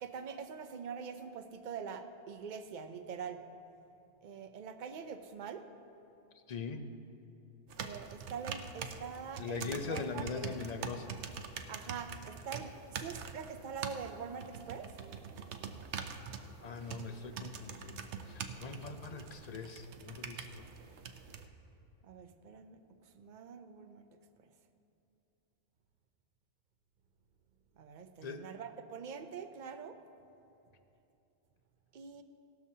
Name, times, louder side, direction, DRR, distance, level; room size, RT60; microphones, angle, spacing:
voice 1, 0.0-3.4 4.2-5.7 7.8-10.3 11.7-14.9 22.0-22.8 23.2-24.0 27.8-30.0 31.9-32.2, right 6 dB, 50° right, 8 dB, 0.7 m, -44 dB
voice 2, 6.5-6.8 9.4-11.2 16.6-20.7 28.2-28.4, left 5 dB, 45° left, 7 dB, 0.6 m, -41 dB
sound 1, 7.7-21.5, right 6 dB, 85° right, 1.0 m, -44 dB
17.5 x 12.5 x 2.8 m, 2.9 s
omnidirectional pair, 1.1 m